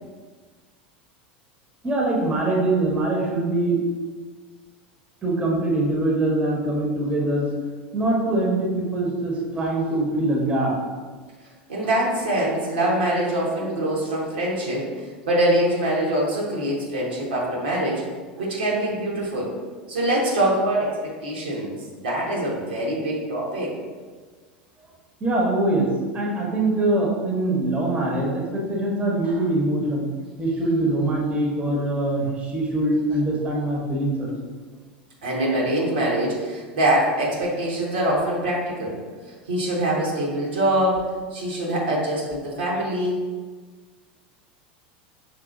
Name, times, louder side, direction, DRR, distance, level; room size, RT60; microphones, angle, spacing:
voice 1, 1.8-3.8 5.2-7.5 7.9-10.7 25.2-30.1 30.4-34.3, right 2 dB, 25° right, -2 dB, 1.1 m, -23 dB
voice 2, 11.7-18.0 18.4-19.5 19.9-21.7 22.0-23.7 35.2-39.0 39.5-43.2, right 1 dB, 80° right, -5 dB, 1.3 m, -24 dB
5.8 x 3.2 x 2.5 m, 1.4 s
hypercardioid pair, 85°, 5 cm